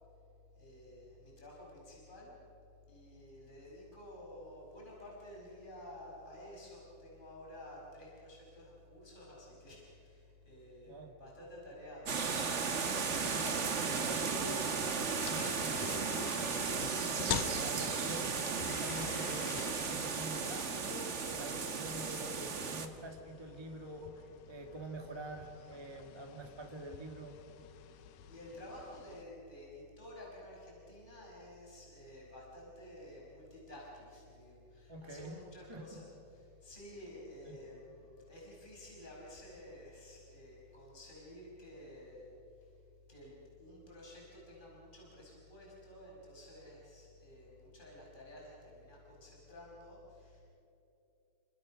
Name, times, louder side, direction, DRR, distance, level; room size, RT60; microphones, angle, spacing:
voice 1, 0.6-2.4 2.9-12.1 12.7-12.8 28.0-42.3 43.1-43.3 43.6-50.4, left 1 dB, 15° left, -4 dB, 5.9 m, -52 dB
sound 1, 12.1-22.9, right 5 dB, 60° right, 0.7 m, -35 dB
voice 2, 13.2-27.4 34.9-35.4 35.7-36.0 37.4-37.6, right 1 dB, 10° right, 2 dB, 1.5 m, -46 dB
sound 2, 14.2-29.2, left 9 dB, 85° left, 2.4 m, -47 dB
29.5 x 25.5 x 6.5 m, 2.8 s
omnidirectional pair, 3.4 m